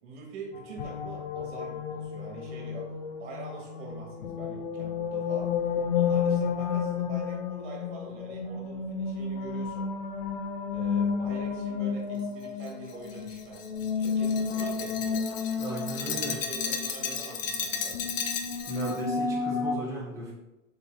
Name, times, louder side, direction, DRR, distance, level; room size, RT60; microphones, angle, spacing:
voice 1, 0.0-2.9 3.2-5.6 5.9-9.9 10.7-15.3 15.9-18.2, right 4 dB, 50° right, 0 dB, 1.9 m, -44 dB
sound 1, 0.5-19.7, left 6 dB, 45° left, 0.6 m, -32 dB
Glass, 12.6-19.0, left 6 dB, 80° left, 1.0 m, -35 dB
voice 2, 15.6-16.4 18.7-20.3, right 2 dB, 10° right, -6 dB, 1.1 m, -36 dB
6.6 x 4.5 x 3.5 m, 0.97 s
supercardioid pair, 175°, 39 cm